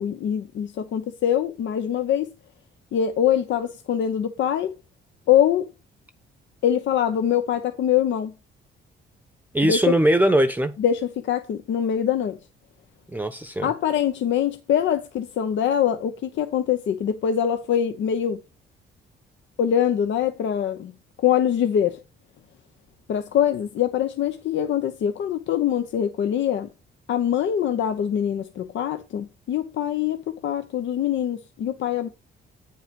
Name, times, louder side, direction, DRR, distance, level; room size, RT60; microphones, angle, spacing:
voice 1, 0.0-2.3 2.9-4.8 5.3-5.7 6.6-8.3 9.6-9.8 10.8-12.4 13.6-18.4 19.6-20.9 21.2-22.0 23.1-26.7 27.1-32.1, left 9 dB, 70° left, 0.8 m, -23 dB
voice 2, 9.5-10.7 13.1-13.7, right 1 dB, 10° right, 0.8 m, -20 dB
8.7 x 5.4 x 5.2 m
cardioid pair, 90°, 20 cm